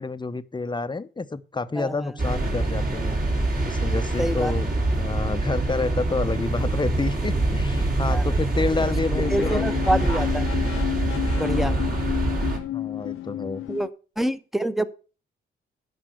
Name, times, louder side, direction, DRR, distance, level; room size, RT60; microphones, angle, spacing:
voice 1, 0.0-3.2 3.6-9.6 11.4-11.9 12.7-13.6, left 3 dB, 20° left, 0.8 m, -29 dB
voice 2, 1.8-2.1 4.2-4.5 8.1-8.2 9.3-10.5 11.3-11.7 13.7-13.9 14.2-14.9, right 1 dB, ahead, 1.0 m, -26 dB
sound 1, 2.2-12.6, right 2 dB, 45° right, 3.8 m, -25 dB
sound 2, 8.7-13.9, left 14 dB, 80° left, 0.5 m, -31 dB
11.5 x 5.4 x 7.9 m
cardioid pair, 75°, 21 cm